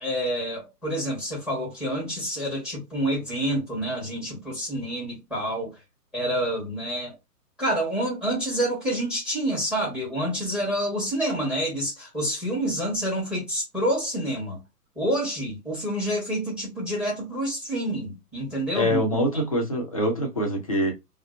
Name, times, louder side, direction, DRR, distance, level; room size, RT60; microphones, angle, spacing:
voice 1, 0.0-5.7 6.1-7.2 7.6-14.6 15.0-19.1, right 1 dB, ahead, 1.0 m, -28 dB
voice 2, 18.7-20.9, equal, 25° left, 0.4 m, -24 dB
2.6 x 2.1 x 2.3 m
figure-of-eight pair, 130°, 47 cm